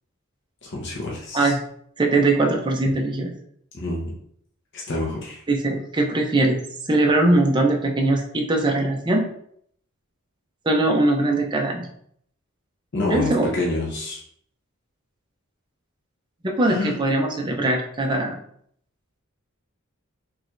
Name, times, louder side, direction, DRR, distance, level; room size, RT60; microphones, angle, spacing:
voice 1, 0.6-1.5 3.7-4.1 4.7-5.4 12.9-14.2 16.7-17.0, left 2 dB, 55° left, -3 dB, 0.8 m, -27 dB
voice 2, 2.0-3.3 5.5-6.6 6.9-9.2 10.7-11.9 13.1-13.5 16.4-18.3, right 2 dB, 20° right, 1 dB, 0.6 m, -21 dB
4.6 x 3.2 x 2.5 m, 0.67 s
head